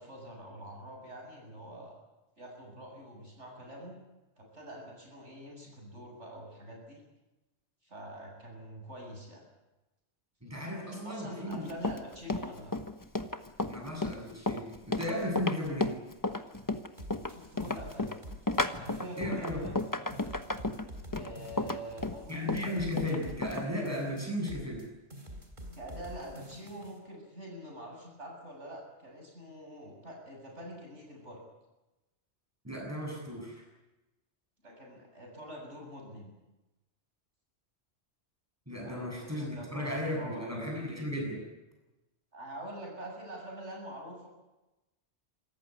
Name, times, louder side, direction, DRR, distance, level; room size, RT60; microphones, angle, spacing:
voice 1, 0.0-1.9 2.4-3.9 4.4-7.0 7.8-9.4 10.8-12.7 17.3-18.1 18.7-19.8 21.1-22.8 25.7-31.4 34.6-36.3 38.8-40.6 42.3-44.3, right 1 dB, 80° right, 0 dB, 8.0 m, -45 dB
voice 2, 10.4-11.7 13.7-16.0 19.2-19.6 22.3-24.9 32.6-33.6 38.7-41.4, left 1 dB, 15° right, -1 dB, 8.1 m, -35 dB
Run, 11.5-23.7, left 2 dB, 20° left, 1.1 m, -33 dB
sound 1, 17.0-18.6 18.9-19.9 20.1-23.6 23.9-24.9 25.1-27.0, equal, 45° right, 4.0 m, -47 dB
26.5 x 15.0 x 9.6 m, 1.0 s
omnidirectional pair, 1.2 m